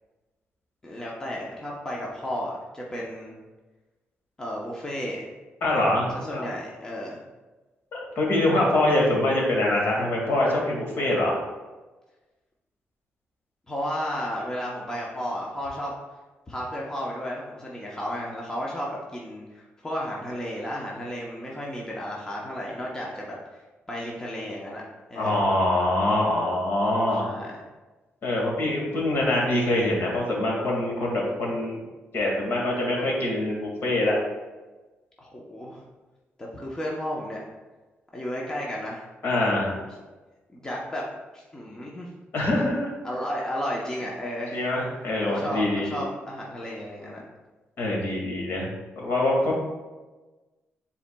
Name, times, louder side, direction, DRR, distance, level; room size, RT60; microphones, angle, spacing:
voice 1, 0.8-3.3 4.4-5.3 6.1-7.2 13.7-15.9 16.5-24.8 25.1-25.4 27.2-27.6 35.2-35.8 36.4-37.4 38.1-39.0 39.9-40.0 40.5-41.0 41.3-42.1 43.0-44.7 45.3-47.2, equal, 15° left, -3 dB, 0.8 m, -33 dB
voice 2, 5.6-6.5 7.9-11.4 25.2-27.3 28.2-31.8 32.1-34.2 39.2-39.8 42.3-42.9 44.5-46.0 47.8-48.7 49.0-49.6, left 1 dB, 55° left, -3 dB, 1.9 m, -24 dB
9.9 x 4.2 x 2.3 m, 1.2 s
wide cardioid pair, 145°, 4 cm